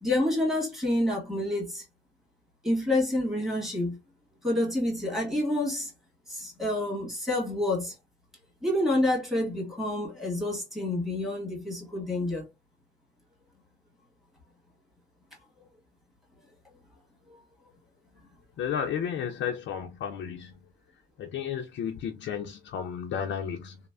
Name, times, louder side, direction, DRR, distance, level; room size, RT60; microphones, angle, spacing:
voice 1, 0.0-1.8 2.6-4.0 4.4-5.9 6.3-8.0 8.6-12.4, left 1 dB, ahead, 1.6 m, -28 dB
voice 2, 18.6-20.5 21.2-23.8, left 8 dB, 65° left, 0.5 m, -33 dB
3.1 x 2.0 x 2.3 m
cardioid pair, 90°, 20 cm